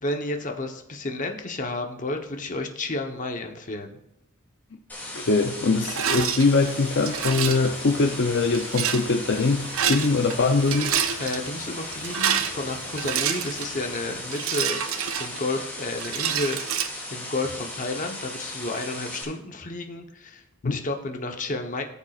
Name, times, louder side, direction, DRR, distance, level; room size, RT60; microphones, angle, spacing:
voice 1, 0.0-4.0 11.2-14.8 15.2-16.6 17.1-21.8, left 2 dB, 40° left, 4 dB, 1.0 m, -31 dB
sound 1, 4.9-19.2, left 1 dB, 10° left, 2.3 m, -37 dB
voice 2, 5.1-10.9 20.6-20.8, left 3 dB, 55° left, 4 dB, 0.6 m, -22 dB
Rattle, 5.8-6.4 7.1-7.7 8.5-9.0 9.6-10.4 10.6-11.4 11.9-13.7 14.3-15.6 16.0-16.9, right 8 dB, 75° right, 0.7 m, -27 dB
sound 2, 6.4-14.2, right 2 dB, 50° right, 3.8 m, -44 dB
17.0 x 7.1 x 2.4 m, 0.84 s
head